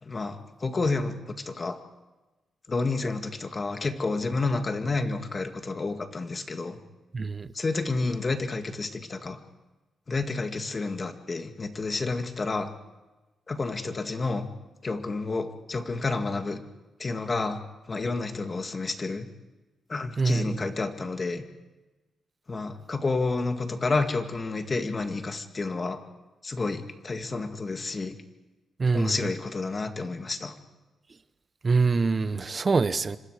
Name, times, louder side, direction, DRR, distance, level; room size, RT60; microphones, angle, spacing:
voice 1, 0.0-1.8 2.7-6.8 7.5-9.4 10.1-12.7 13.5-14.5 14.8-16.6 17.0-17.6 17.9-19.3 19.9-21.5 22.5-26.0 26.4-28.2 28.9-30.5, left 3 dB, 30° left, 7 dB, 2.0 m, -30 dB
voice 2, 7.1-7.5 20.2-20.6 28.8-29.1 31.6-33.2, right 4 dB, 35° right, 14 dB, 0.9 m, -24 dB
27.5 x 25.5 x 4.9 m, 1.1 s
cardioid pair, 115°, 0 cm